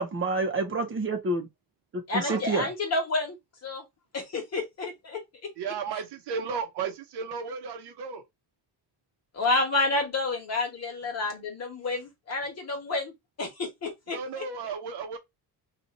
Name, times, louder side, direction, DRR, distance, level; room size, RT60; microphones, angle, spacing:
voice 1, 0.0-1.5 1.9-2.7, right 3 dB, 30° right, 0.8 m, -28 dB
voice 2, 2.1-3.8 4.1-5.5 9.3-13.1 13.4-14.4, left 3 dB, 40° left, 1.3 m, -30 dB
voice 3, 5.6-8.2 14.1-15.2, right 5 dB, 75° right, 1.0 m, -34 dB
2.8 x 2.5 x 4.0 m
cardioid pair, 140°, 40 cm